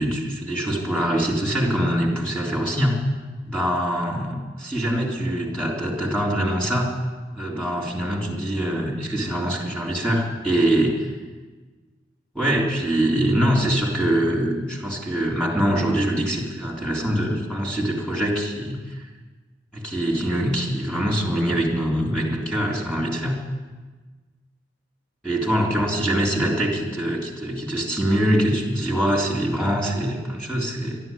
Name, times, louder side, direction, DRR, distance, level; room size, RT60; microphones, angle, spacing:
voice 1, 0.0-3.0 3.5-6.9 7.3-11.1 12.3-18.8 19.7-23.4 25.2-31.0, right 1 dB, 5° left, -4 dB, 3.8 m, -23 dB
12.5 x 11.5 x 9.5 m, 1.3 s
head